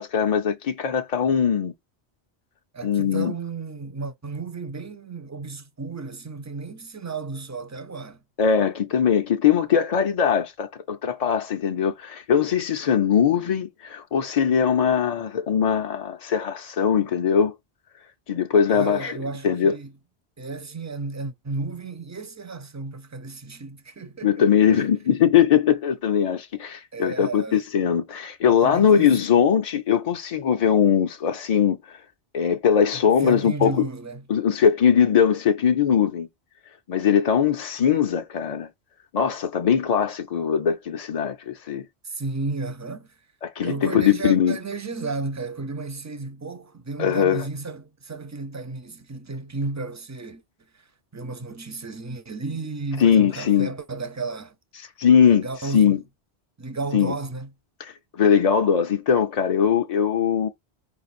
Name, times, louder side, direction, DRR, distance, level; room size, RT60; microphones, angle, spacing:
voice 1, 0.0-1.7 2.8-3.3 8.4-17.5 18.3-19.2 19.4-19.8 24.2-32.0 32.3-33.9 34.3-36.3 36.9-38.7 39.1-41.9 43.4-44.6 47.0-47.4 53.0-53.7 55.0-56.0 56.9-57.1 57.8-60.5, left 8 dB, 50° left, 0.5 m, -21 dB
voice 2, 2.7-8.2 18.7-19.9 20.4-24.9 26.9-27.6 28.6-29.1 32.9-34.2 42.0-43.1 43.6-50.4 50.7-50.9 51.1-54.5 55.2-56.0 56.6-57.5, right 3 dB, 20° right, 0.5 m, -33 dB
5.0 x 2.5 x 4.1 m
omnidirectional pair, 1.1 m